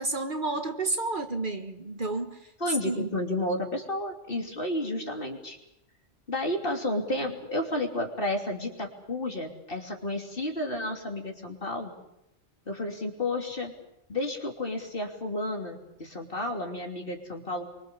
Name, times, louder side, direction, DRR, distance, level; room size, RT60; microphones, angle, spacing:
voice 1, 0.0-2.5 2.8-3.1, right 2 dB, 45° right, 1.6 m, -31 dB
voice 2, 2.6-5.6 6.3-11.9 12.7-13.7 14.1-17.7, left 1 dB, 50° left, 3.3 m, -31 dB
25.5 x 24.0 x 6.9 m
omnidirectional pair, 1.2 m